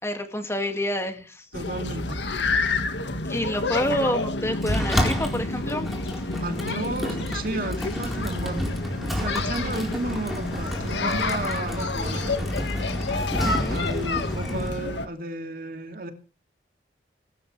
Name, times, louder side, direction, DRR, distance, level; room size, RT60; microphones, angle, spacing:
voice 1, 0.0-1.4 3.3-5.9 13.4-13.8, left 1 dB, 15° left, 6 dB, 2.2 m, -28 dB
sound 1, 1.5-15.1, left 3 dB, 90° left, 1.8 m, -29 dB
voice 2, 1.5-2.2 6.4-12.5 13.7-16.1, right 2 dB, 50° right, 6 dB, 2.6 m, -33 dB
Sliding door, 4.6-14.7, equal, ahead, 4.2 m, -30 dB
21.5 x 13.0 x 3.4 m, 0.34 s
head